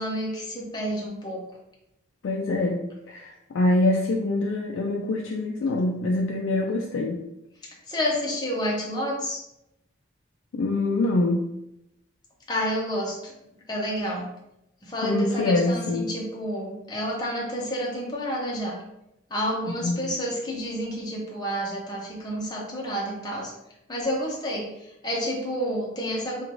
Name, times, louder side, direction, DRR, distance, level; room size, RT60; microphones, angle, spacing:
voice 1, 0.0-1.4 7.6-9.4 12.5-13.3 13.7-14.3 14.8-18.8 19.3-23.5 23.9-26.4, equal, 20° left, -4 dB, 0.6 m, -29 dB
voice 2, 2.2-7.2 10.5-11.5 15.0-16.1 19.7-20.0, left 2 dB, 75° left, 0 dB, 0.4 m, -25 dB
3.1 x 2.3 x 3.7 m, 0.85 s
head